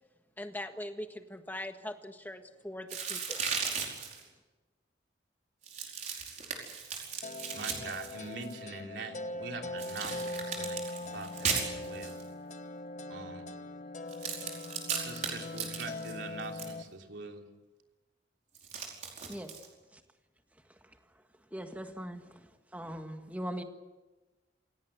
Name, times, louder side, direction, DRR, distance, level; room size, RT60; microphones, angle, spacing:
voice 1, 0.4-3.4, left 1 dB, 10° left, 6 dB, 1.5 m, -41 dB
sound 1, 2.9-4.2 5.6-8.5 9.8-12.2 14.1-16.7 18.5-19.7, right 6 dB, 40° right, 5.0 m, -37 dB
voice 2, 7.1-12.2 13.1-13.5 14.9-17.4, right 3 dB, 75° right, 3 dB, 3.2 m, -44 dB
sound 2, 7.2-16.8, left 2 dB, 40° left, 1.1 m, -41 dB
voice 3, 21.5-22.3 22.7-23.6, equal, 10° right, 5 dB, 1.8 m, -39 dB
27.5 x 17.5 x 8.2 m, 1.2 s
head